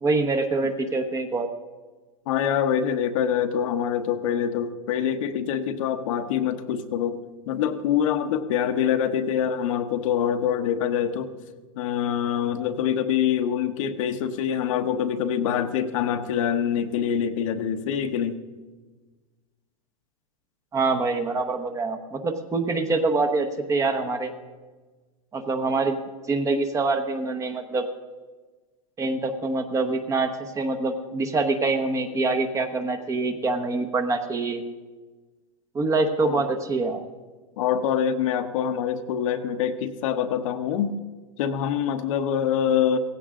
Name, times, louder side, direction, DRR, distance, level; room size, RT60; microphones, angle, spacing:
voice 1, 0.0-1.5 20.7-24.3 25.3-26.0 26.3-27.9 29.0-34.6 35.7-37.0, right 3 dB, 15° right, 7 dB, 1.0 m, -25 dB
voice 2, 2.3-11.3 11.8-18.4 36.2-36.4 37.6-41.0 41.4-43.0, left 8 dB, 60° left, 7 dB, 1.1 m, -25 dB
17.0 x 15.5 x 3.7 m, 1.3 s
hypercardioid pair, 140°, 19 cm